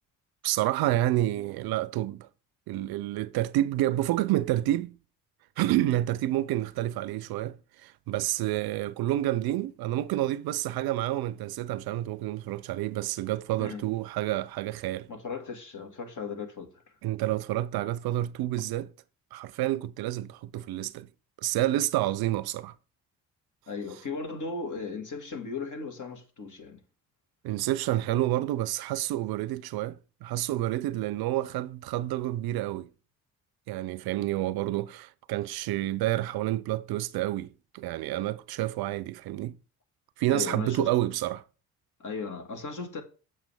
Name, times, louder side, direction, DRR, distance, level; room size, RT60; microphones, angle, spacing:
voice 1, 0.4-2.3 2.7-4.9 5.6-15.1 17.0-18.9 19.3-21.1 21.4-22.7 27.4-32.9 33.7-39.6 40.2-41.4, right 14 dB, 60° right, 0.6 m, -29 dB
voice 2, 15.1-16.7 23.7-26.8 40.3-40.9 42.0-43.0, left 4 dB, 45° left, 1.8 m, -36 dB
7.3 x 6.1 x 3.3 m
hypercardioid pair, 50°, 43 cm